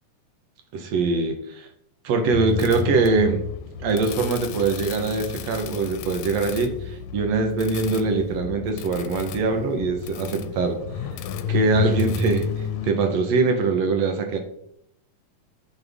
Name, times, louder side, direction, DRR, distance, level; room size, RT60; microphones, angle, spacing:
voice 1, 0.7-1.7 2.0-3.4 3.8-10.8 11.5-12.5 12.8-14.4, right 3 dB, 70° right, 5 dB, 2.1 m, -23 dB
sound 1, 2.3-12.9, left 7 dB, 80° left, 1.9 m, -31 dB
9.8 x 5.6 x 3.5 m, 0.71 s
omnidirectional pair, 3.3 m